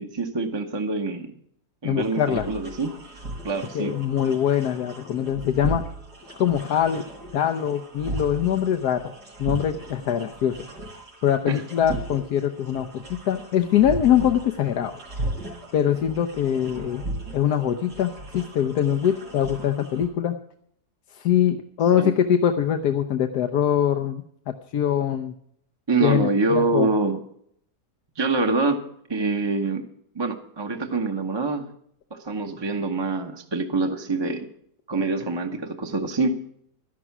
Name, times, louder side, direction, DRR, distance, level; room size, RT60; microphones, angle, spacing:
voice 1, 0.0-1.3 1.8-2.9 3.4-3.9 11.5-11.6 22.0-22.1 25.9-27.2 28.2-28.8 29.1-29.8 30.1-31.7 32.1-34.5 34.9-36.4, right 3 dB, 20° right, 4 dB, 0.9 m, -25 dB
voice 2, 1.8-2.5 3.7-5.8 6.4-7.0 7.3-9.0 9.4-10.5 11.2-14.9 15.7-17.0 17.3-20.4 21.1-24.2 24.7-25.3 26.0-26.9, left 9 dB, 80° left, 5 dB, 1.4 m, -23 dB
sound 1, 2.0-20.1, right 2 dB, 90° right, 4.5 m, -37 dB
12.5 x 11.0 x 6.0 m, 0.68 s
omnidirectional pair, 1.7 m